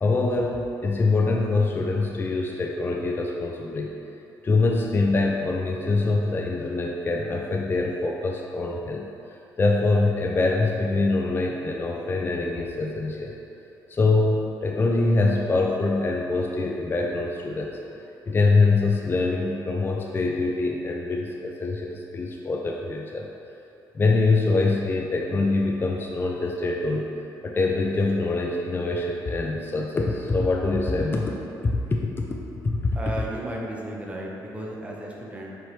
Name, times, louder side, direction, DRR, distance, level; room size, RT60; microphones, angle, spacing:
voice 1, 0.0-3.9 4.4-9.1 9.6-13.3 13.9-17.8 18.3-23.3 23.9-27.1 27.4-31.3 31.6-32.3 32.6-33.0, left 3 dB, 25° left, 0 dB, 0.4 m, -24 dB
voice 2, 32.9-35.5, right 1 dB, 15° right, -2 dB, 0.7 m, -34 dB
4.5 x 2.9 x 3.2 m, 2.8 s
supercardioid pair, 70°, 8 cm